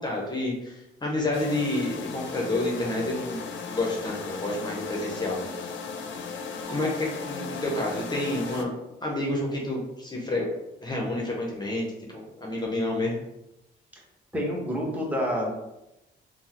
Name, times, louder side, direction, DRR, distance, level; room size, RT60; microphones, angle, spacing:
voice 1, 0.0-5.5 6.7-8.7 9.0-10.5 10.8-11.9 12.1-13.2, left 1 dB, 20° left, -2 dB, 0.7 m, -29 dB
sound 1, 1.3-8.6, left 5 dB, 70° left, 0.4 m, -36 dB
voice 2, 14.3-15.5, equal, 10° right, -2 dB, 0.9 m, -28 dB
3.5 x 2.0 x 2.9 m, 0.92 s
cardioid pair, 90°, 20 cm